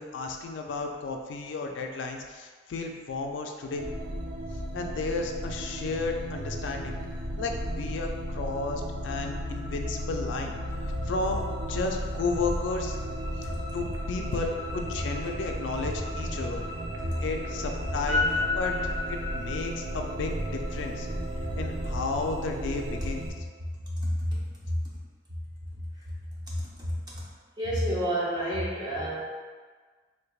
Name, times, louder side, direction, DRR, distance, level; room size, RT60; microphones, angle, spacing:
voice 1, 0.0-3.9 4.7-7.0 7.4-10.5 11.0-13.0 13.4-16.6 17.2-18.7 19.1-21.1 21.6-23.3, left 3 dB, 80° left, 3 dB, 0.4 m, -33 dB
sound 1, 3.8-23.3, equal, 70° right, 0.6 m, -34 dB
sound 2, 14.1-21.9, left 3 dB, 15° left, 0.9 m, -35 dB
voice 2, 23.9-25.0 26.0-26.1 26.4-27.2 27.6-29.2, equal, 20° right, -6 dB, 0.7 m, -30 dB
3.3 x 3.2 x 2.3 m, 1.5 s
head